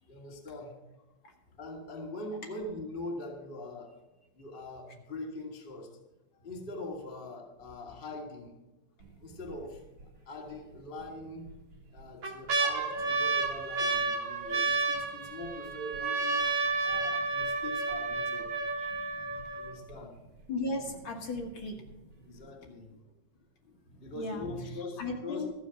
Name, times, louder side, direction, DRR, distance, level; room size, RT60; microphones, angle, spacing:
voice 1, 0.1-0.8 1.6-4.0 4.3-6.0 6.3-8.5 9.2-9.8 10.2-11.5 11.9-16.5 16.8-18.5 19.5-20.2 22.2-22.9 24.0-25.5, left 2 dB, 90° left, 1 dB, 0.5 m, -42 dB
sound 1, 9.0-9.5 10.0-10.1 11.0-11.5 12.0-19.9 20.6-20.7 20.9-21.4 21.9-22.0, right 4 dB, 55° right, 1.3 m, -31 dB
voice 2, 20.5-21.8 22.6-22.7 23.9-25.5, left 2 dB, 50° left, 0 dB, 1.6 m, -37 dB
14.0 x 6.6 x 6.9 m, 1.1 s
omnidirectional pair, 4.2 m